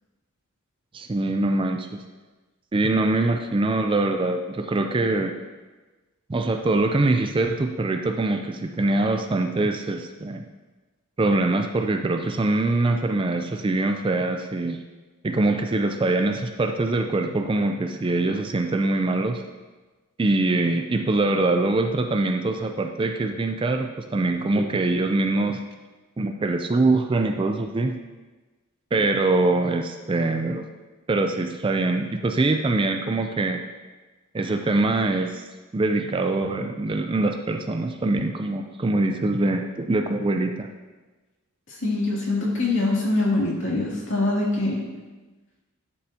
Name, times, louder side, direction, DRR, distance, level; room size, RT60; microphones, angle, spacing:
voice 1, 0.9-2.0 2.7-5.3 6.3-10.5 11.2-14.8 15.2-19.4 20.2-25.6 26.2-28.0 28.9-30.7 31.1-33.6 34.3-35.5 35.7-40.7, right 2 dB, 25° right, 5 dB, 0.4 m, -23 dB
voice 2, 41.7-44.8, left 2 dB, 55° left, -5 dB, 2.4 m, -24 dB
11.5 x 6.9 x 2.8 m, 1.2 s
head